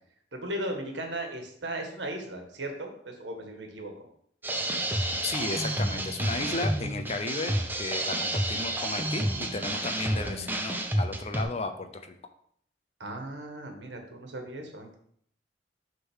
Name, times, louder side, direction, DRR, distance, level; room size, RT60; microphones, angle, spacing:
voice 1, 0.3-4.1 13.0-15.0, right 1 dB, 75° right, 3 dB, 1.5 m, -37 dB
sound 1, 4.4-11.4, right 1 dB, 10° right, 0.7 m, -30 dB
voice 2, 5.2-12.1, left 3 dB, 35° left, 7 dB, 0.6 m, -34 dB
6.7 x 3.8 x 6.2 m, 0.67 s
head